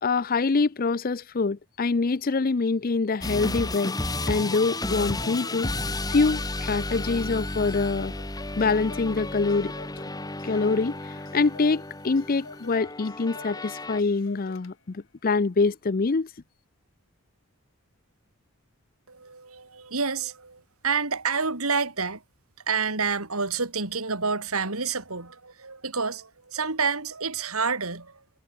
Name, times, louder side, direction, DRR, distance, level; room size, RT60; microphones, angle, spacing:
voice 1, 0.0-3.9 4.3-5.7 6.1-8.1 8.6-9.7 10.4-16.3, left 4 dB, 40° left, 0.5 m, -25 dB
sound 1, 3.2-14.0, left 2 dB, 15° left, 1.7 m, -33 dB
Clock, 3.7-15.0, left 3 dB, 60° left, 3.3 m, -50 dB
voice 2, 19.1-22.2 22.7-28.2, right 5 dB, 75° right, 3.5 m, -28 dB
head